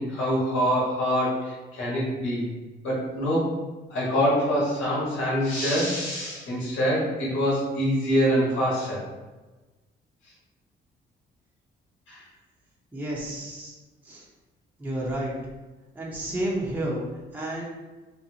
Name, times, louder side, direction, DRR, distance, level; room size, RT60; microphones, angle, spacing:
voice 1, 0.0-2.4 2.8-3.5 3.9-9.0 12.1-12.2, equal, 75° left, -6 dB, 1.5 m, -25 dB
voice 2, 12.9-13.7 14.0-14.2 14.8-15.3 15.9-17.0 17.3-17.6, right 1 dB, 10° right, -5 dB, 0.8 m, -30 dB
4.1 x 2.1 x 2.8 m, 1.2 s
cardioid pair, 90°, 20 cm